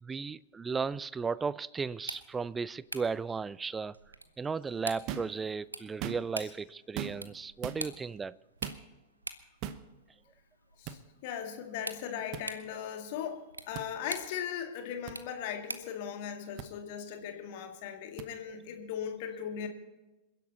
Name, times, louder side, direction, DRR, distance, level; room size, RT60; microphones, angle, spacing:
voice 1, 0.0-4.0 4.4-8.4, right 5 dB, 15° right, 0.4 m, -35 dB
sound 1, 1.9-16.0, right 2 dB, 80° right, 1.0 m, -46 dB
sound 2, 5.1-5.4 5.9-6.4 6.9-7.3 7.6-7.8 8.6-8.8 9.6-9.8 10.8-11.0 12.3-12.5 13.7-13.9 15.1-15.2 16.6-16.7 18.2-18.3, right 10 dB, 40° right, 1.0 m, -39 dB
voice 2, 10.8-19.7, left 8 dB, 50° left, 2.1 m, -38 dB
27.5 x 11.0 x 4.0 m
figure-of-eight pair, 90°, 0 cm